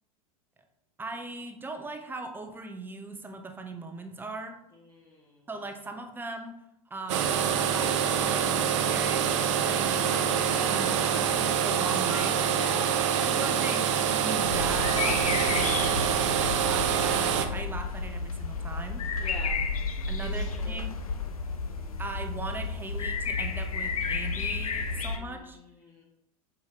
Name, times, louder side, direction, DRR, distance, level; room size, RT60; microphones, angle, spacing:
voice 1, 1.0-4.6 5.5-6.6 6.9-10.0 10.7-10.9 11.2-12.4 13.2-15.9 16.4-19.0 20.1-20.9 22.0-25.6, right 3 dB, 10° right, 5 dB, 0.7 m, -39 dB
voice 2, 4.7-5.5 10.0-11.4 12.5-13.8 15.4-15.9 19.2-19.6 20.2-20.8 25.2-26.0, left 2 dB, 20° left, -3 dB, 1.1 m, -43 dB
sound 1, 7.1-17.5, right 8 dB, 55° right, 0.7 m, -26 dB
sound 2, 14.4-25.2, left 4 dB, 70° left, 0.7 m, -32 dB
7.1 x 4.9 x 2.9 m, 0.83 s
figure-of-eight pair, 85°, 19 cm